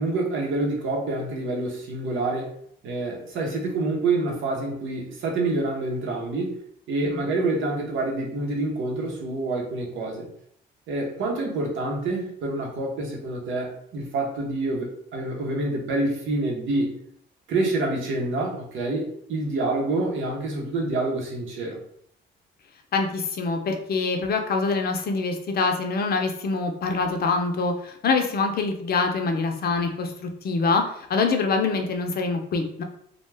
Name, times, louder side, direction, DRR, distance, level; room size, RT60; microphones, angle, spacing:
voice 1, 0.0-2.5 2.8-6.6 6.9-10.3 10.9-16.9 17.5-21.8, right 2 dB, 80° right, -1 dB, 0.8 m, -27 dB
voice 2, 22.9-30.8 31.1-32.8, left 4 dB, 50° left, 4 dB, 0.5 m, -25 dB
2.3 x 2.2 x 3.2 m, 0.68 s
cardioid pair, 90°, 20 cm